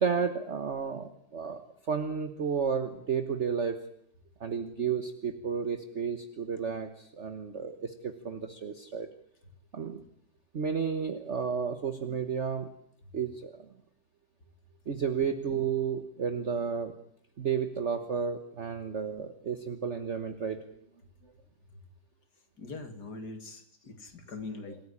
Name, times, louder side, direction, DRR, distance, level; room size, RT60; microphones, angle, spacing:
voice 1, 0.0-3.8 4.4-9.1 9.7-10.0 10.5-12.7 13.1-13.5 14.9-16.9 17.4-20.6 22.7-22.9 24.7-24.8, right 6 dB, 40° right, 8 dB, 1.4 m, -32 dB
voice 2, 22.6-24.8, left 3 dB, 60° left, 7 dB, 3.0 m, -42 dB
26.5 x 15.5 x 9.9 m, 0.74 s
omnidirectional pair, 2.0 m